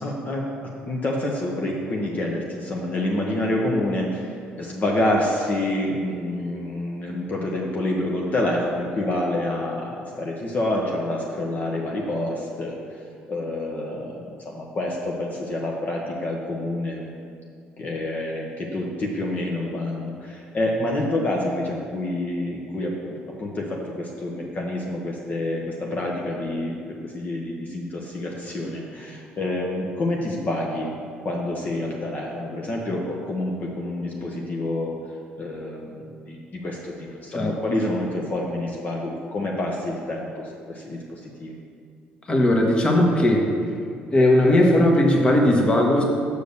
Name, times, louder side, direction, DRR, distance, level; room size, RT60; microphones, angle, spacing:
voice 1, 0.0-0.5 0.9-13.0 13.3-17.1 17.8-31.0 31.2-35.0 35.4-41.5, left 1 dB, 40° left, -2 dB, 1.0 m, -28 dB
voice 2, 42.3-43.4 44.1-46.0, left 1 dB, 25° left, 1 dB, 1.2 m, -18 dB
6.6 x 5.0 x 6.6 m, 2.2 s
cardioid pair, 100°, 4 cm